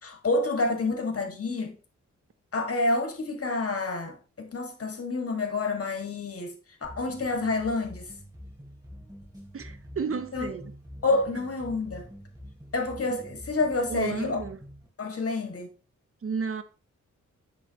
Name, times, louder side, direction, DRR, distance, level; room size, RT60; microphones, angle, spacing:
voice 1, 0.0-1.7 2.5-6.6 6.8-8.1 10.3-10.5 11.0-12.1 12.7-14.4 15.0-15.7, left 3 dB, 50° left, 1.8 m, -28 dB
sound 1, 6.8-14.9, equal, 15° right, 2.7 m, -46 dB
voice 2, 9.5-10.7 13.9-14.6 16.2-16.6, right 5 dB, 50° right, 0.8 m, -32 dB
9.8 x 4.0 x 2.9 m
cardioid pair, 60°, 30 cm